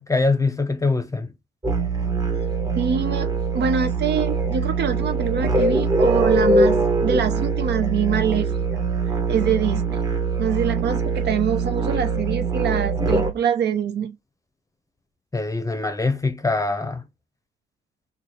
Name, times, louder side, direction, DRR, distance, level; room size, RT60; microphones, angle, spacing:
voice 1, 0.0-1.3 15.3-17.0, left 3 dB, 15° left, 0.7 m, -23 dB
sound 1, 1.6-13.3, right 3 dB, 20° right, 0.9 m, -22 dB
voice 2, 2.7-3.3 3.5-8.5 9.3-10.1 10.4-14.2, right 7 dB, 60° right, 0.7 m, -24 dB
3.1 x 2.1 x 4.1 m
cardioid pair, 90°, 20 cm